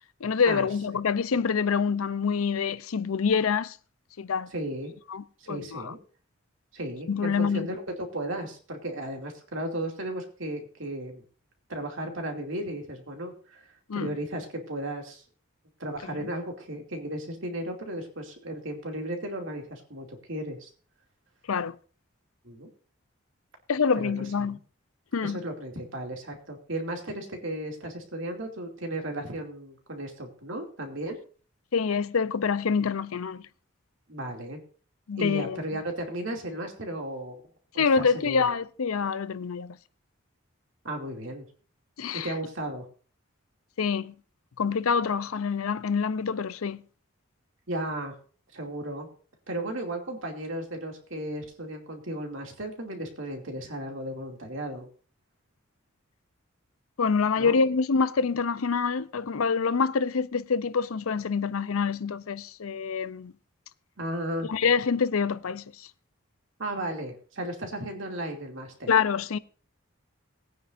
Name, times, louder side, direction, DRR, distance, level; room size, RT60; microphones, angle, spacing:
voice 1, 0.2-3.8 4.2-4.5 5.1-5.9 7.1-7.7 13.9-14.1 21.5-21.7 23.7-24.6 25.1-25.4 31.7-33.4 35.1-35.6 37.8-39.8 42.0-42.3 43.8-44.1 44.6-46.8 57.0-63.3 64.5-65.9 68.9-69.4, left 5 dB, 85° left, 0.6 m, -26 dB
voice 2, 4.5-4.9 5.4-6.0 6.7-11.2 11.7-13.6 13.9-15.2 15.8-20.7 22.4-22.7 23.9-24.6 25.2-31.2 34.1-34.6 35.2-37.4 37.7-38.4 40.8-41.4 42.1-42.9 47.7-48.1 48.5-49.1 49.5-54.9 57.4-57.6 64.0-64.5 66.6-68.9, right 1 dB, 65° right, 2.6 m, -35 dB
19.5 x 9.4 x 2.6 m
head